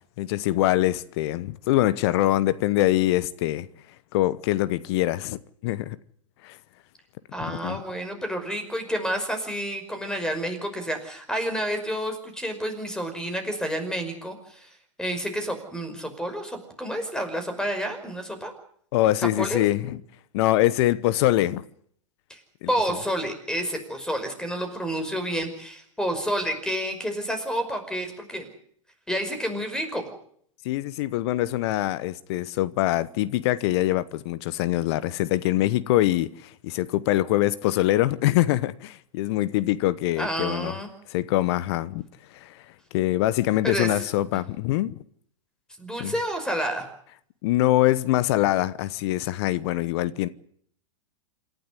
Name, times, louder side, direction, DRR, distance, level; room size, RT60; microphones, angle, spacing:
voice 1, 0.2-3.7 4.1-6.0 6.4-6.6 7.4-7.8 18.9-20.0 20.3-21.6 22.6-22.7 30.6-40.8 41.1-42.0 42.3-42.6 42.9-45.0 46.0-46.1 47.4-50.3, left 15 dB, 55° left, 1.0 m, -24 dB
voice 2, 7.3-18.5 19.4-19.6 22.3-22.4 22.7-28.5 29.1-30.0 40.2-40.9 43.6-43.9 45.8-46.9, equal, 5° left, 5.5 m, -29 dB
27.0 x 12.0 x 9.6 m
hypercardioid pair, 100°, 16 cm